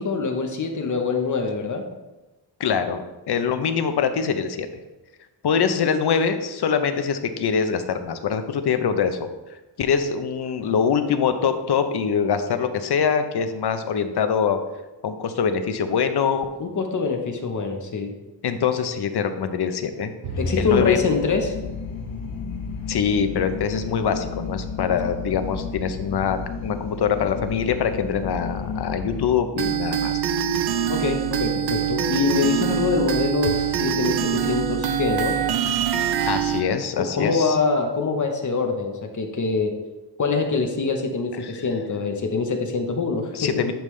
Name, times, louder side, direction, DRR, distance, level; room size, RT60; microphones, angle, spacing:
voice 1, 0.0-1.9 16.6-18.1 20.4-21.5 30.9-35.4 37.0-39.7 40.2-43.6, left 4 dB, 40° left, 4 dB, 1.0 m, -24 dB
voice 2, 2.6-4.7 5.4-9.3 9.8-14.6 15.0-16.5 18.4-20.1 20.6-21.0 22.9-30.2 36.3-37.6 41.4-41.6 43.3-43.7, left 6 dB, 60° left, 8 dB, 0.7 m, -24 dB
Bowed string instrument, 20.2-23.6, equal, 90° right, 1.4 m, -35 dB
sound 1, 20.4-29.3, left 5 dB, 80° left, 1.4 m, -33 dB
sound 2, 29.6-36.6, right 9 dB, 55° right, 0.6 m, -24 dB
10.5 x 5.3 x 3.2 m, 1.1 s
wide cardioid pair, 165°, 45 cm